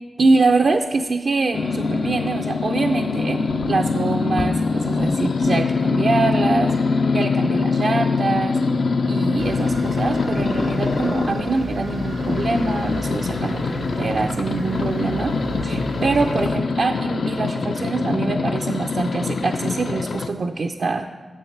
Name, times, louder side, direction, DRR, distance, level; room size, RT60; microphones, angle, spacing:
voice 1, 0.2-3.4 3.7-6.7 7.1-8.6 9.1-15.3 15.6-21.1, right 3 dB, 55° right, 4 dB, 0.4 m, -24 dB
sound 1, 1.5-20.3, left 4 dB, 60° left, 0.4 m, -23 dB
sound 2, 9.4-16.5, right 2 dB, 85° right, 0.8 m, -32 dB
7.4 x 7.1 x 6.5 m, 1.4 s
wide cardioid pair, 95°, 0 cm